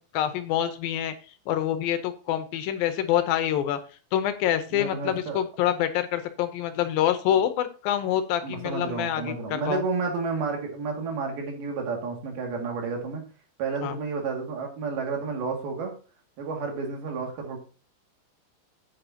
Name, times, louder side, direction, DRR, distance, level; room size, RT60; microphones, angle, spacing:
voice 1, 0.1-1.1 1.5-3.8 4.1-9.8 13.8-14.0, left 11 dB, 80° left, 9 dB, 2.6 m, -26 dB
voice 2, 4.7-5.4 7.3-7.4 8.4-13.2 13.6-16.0 16.4-17.6, right 4 dB, 80° right, 1 dB, 4.1 m, -31 dB
10.0 x 8.6 x 2.8 m, 0.36 s
omnidirectional pair, 4.3 m